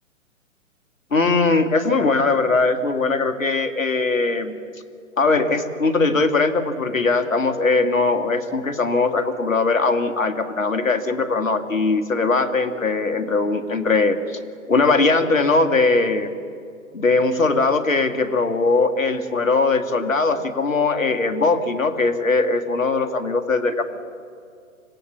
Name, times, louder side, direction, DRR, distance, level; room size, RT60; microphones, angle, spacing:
voice 1, 1.1-4.6 5.2-14.4 14.7-16.3 16.9-23.8, left 3 dB, 70° left, 8 dB, 1.9 m, -20 dB
25.5 x 17.0 x 7.3 m, 2.4 s
figure-of-eight pair, 125°, 41 cm